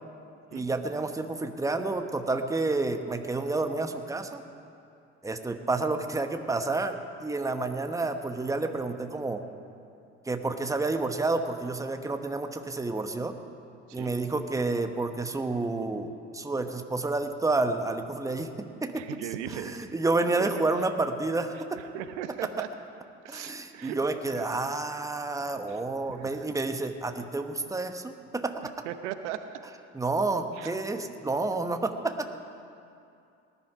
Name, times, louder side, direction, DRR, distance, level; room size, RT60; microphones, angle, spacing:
voice 1, 0.5-4.4 5.2-9.4 10.3-13.3 13.9-18.5 18.8-19.1 19.5-21.8 23.3-28.7 29.9-32.3, right 3 dB, 10° right, 7 dB, 1.1 m, -30 dB
voice 2, 18.9-19.8 20.4-20.5 21.5-22.7 23.2-24.0 24.3-24.5 25.7-25.8 26.1-26.5 28.8-29.4 30.5-30.7, right 11 dB, 75° right, 9 dB, 0.9 m, -38 dB
19.0 x 11.0 x 5.0 m, 2.6 s
hypercardioid pair, 65°, 37 cm